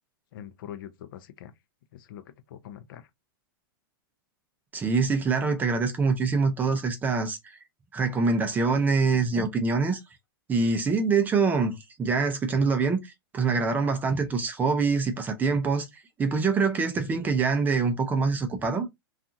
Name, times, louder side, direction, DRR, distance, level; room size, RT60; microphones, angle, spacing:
voice 1, 0.3-1.5 1.9-3.1, left 10 dB, 60° left, 0.5 m, -43 dB
voice 2, 4.7-7.6 7.9-10.0 10.5-18.9, right 4 dB, 15° right, 0.4 m, -25 dB
2.7 x 2.4 x 2.5 m
hypercardioid pair, 140°, 12 cm